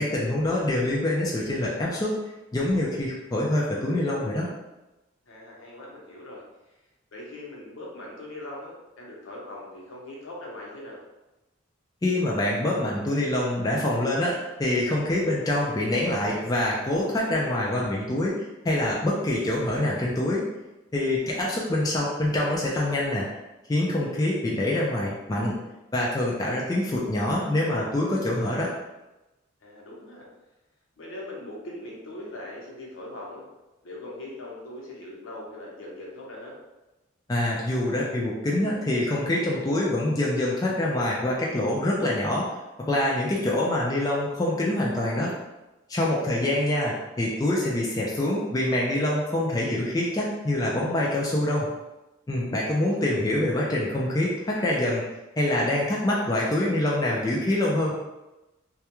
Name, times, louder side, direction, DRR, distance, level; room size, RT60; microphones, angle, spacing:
voice 1, 0.0-2.2 2.5-4.5 12.0-20.4 20.9-23.3 23.7-25.6 25.9-28.7 37.3-42.5 42.8-45.3 45.9-51.7 52.3-55.0 55.4-57.9, left 1 dB, 20° left, -4 dB, 0.3 m, -25 dB
voice 2, 5.3-6.8 7.1-11.0 21.2-21.5 29.6-30.3 31.0-33.4 33.8-36.5 46.0-46.5 52.6-53.0, left 1 dB, 75° left, -3 dB, 0.7 m, -41 dB
2.3 x 2.1 x 2.9 m, 1.0 s
head